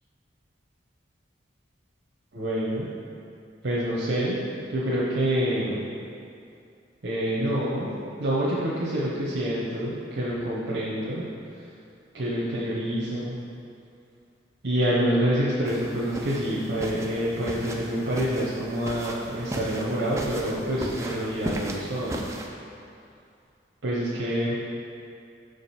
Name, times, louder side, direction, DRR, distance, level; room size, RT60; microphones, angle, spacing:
voice 1, 2.3-2.9 3.6-4.4 4.7-5.8 7.0-7.9 8.2-11.2 11.5-11.6 12.1-13.4 14.6-22.3 23.8-24.6, equal, 85° right, -8 dB, 1.0 m, -27 dB
sound 1, 15.7-22.5, right 1 dB, 15° right, 0.4 m, -36 dB
6.5 x 5.2 x 4.3 m, 2.5 s
head